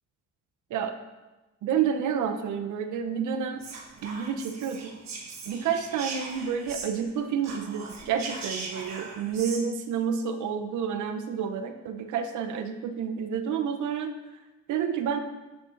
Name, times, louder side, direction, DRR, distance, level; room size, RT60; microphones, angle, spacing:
voice 1, 1.6-3.6 4.0-4.9 5.5-14.1 14.7-15.2, right 7 dB, 80° right, 8 dB, 0.7 m, -29 dB
Whispering, 3.6-7.1 7.4-9.6, right 4 dB, 60° right, 1.3 m, -39 dB
10.5 x 6.1 x 2.5 m, 1.1 s
cardioid pair, 90°, 30 cm